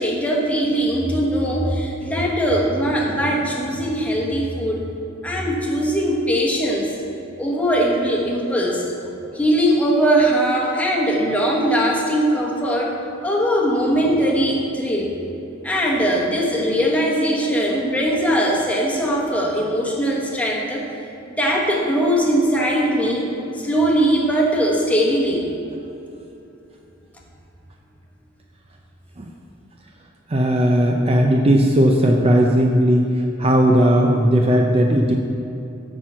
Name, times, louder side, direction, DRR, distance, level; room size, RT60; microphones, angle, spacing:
voice 1, 0.0-4.9 5.2-6.9 7.4-9.0 9.3-15.2 15.6-20.9 21.2-23.3 23.5-25.5, equal, 5° left, -3 dB, 1.3 m, -20 dB
voice 2, 30.3-35.1, equal, 30° right, 1 dB, 0.5 m, -17 dB
10.0 x 4.4 x 7.3 m, 2.8 s
head